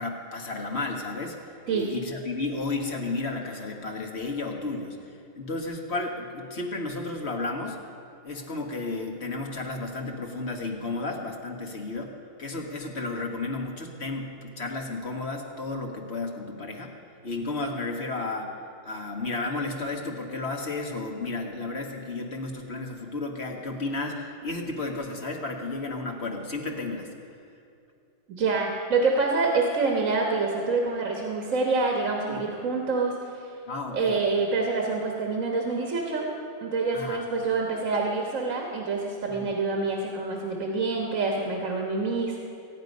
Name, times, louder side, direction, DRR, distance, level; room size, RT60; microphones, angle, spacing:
voice 1, 0.0-1.4 1.7-5.0 5.4-7.8 8.2-12.1 12.4-16.9 17.2-18.5 18.8-27.1 32.3-32.4 33.7-34.2 36.9-37.3 39.3-39.5, left 3 dB, 55° left, 2 dB, 1.8 m, -33 dB
voice 2, 28.3-33.5 33.9-36.3 36.6-42.4, right 3 dB, 80° right, 0 dB, 1.7 m, -26 dB
23.5 x 9.7 x 5.4 m, 2.5 s
omnidirectional pair, 1.4 m